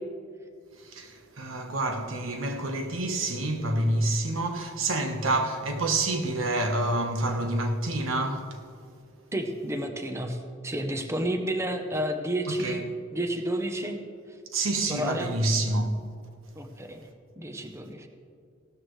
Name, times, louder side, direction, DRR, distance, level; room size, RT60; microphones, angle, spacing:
voice 1, 0.8-8.6 12.5-12.8 14.5-15.9, right 2 dB, 85° right, 1.2 m, -28 dB
voice 2, 9.3-12.8 13.1-14.0 14.9-15.4 16.6-17.0 17.4-18.1, right 1 dB, 15° right, 0.8 m, -31 dB
16.0 x 13.0 x 3.2 m
head